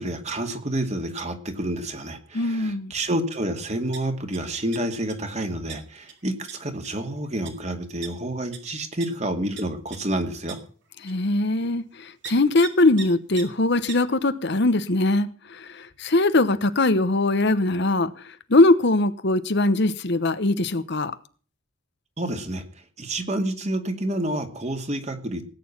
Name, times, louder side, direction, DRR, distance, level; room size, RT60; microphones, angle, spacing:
voice 1, 0.0-10.6 22.2-22.6 23.0-25.4, right 1 dB, 35° right, 2.4 m, -29 dB
voice 2, 2.3-2.9 11.0-11.8 12.3-15.3 16.0-18.1 18.5-21.1, left 2 dB, 55° left, 1.0 m, -21 dB
sound 1, 3.3-3.5 3.7-4.4 4.7-5.1 5.7-5.8 6.1-6.2 6.5-6.6 6.8-7.0 7.5-7.6 8.0-8.1 8.5-8.6 9.0-9.1 9.6-9.7 9.9-10.0 10.5-10.6 11.1-11.2 12.2-12.3 12.6-12.7 13.0-13.1 13.4-13.5 13.9-14.0, right 8 dB, 60° right, 3.2 m, -37 dB
18.0 x 9.4 x 6.0 m
head